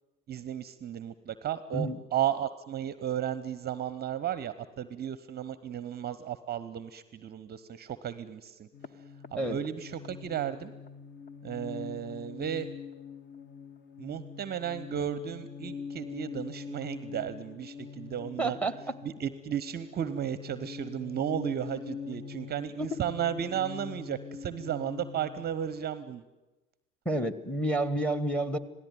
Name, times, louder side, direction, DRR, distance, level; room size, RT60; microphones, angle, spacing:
voice 1, 0.3-8.7 9.3-10.7 11.4-12.7 14.0-18.6 19.0-26.2, right 10 dB, 25° right, 15 dB, 0.9 m, -34 dB
sound 1, 8.7-25.5, left 6 dB, 25° left, 1.3 m, -44 dB
voice 2, 18.4-18.9 22.8-23.0 27.0-28.6, right 1 dB, 5° left, 15 dB, 1.5 m, -30 dB
27.0 x 18.0 x 9.4 m, 1.1 s
figure-of-eight pair, 80°, 40 cm